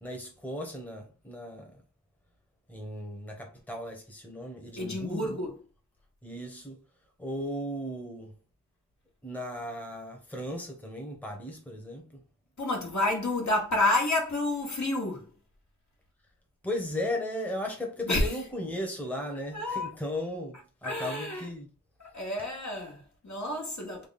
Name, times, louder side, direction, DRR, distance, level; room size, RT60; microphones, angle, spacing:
voice 1, 0.0-1.7 2.7-5.4 6.2-6.8 7.2-8.3 9.2-12.0 16.6-21.7, left 1 dB, 5° left, 1.0 m, -36 dB
voice 2, 4.8-5.5 12.6-15.3 18.1-18.4 19.5-19.9 20.8-21.5 22.0-24.1, left 2 dB, 55° left, 1.3 m, -29 dB
3.5 x 2.3 x 4.1 m
wide cardioid pair, 60°, 33 cm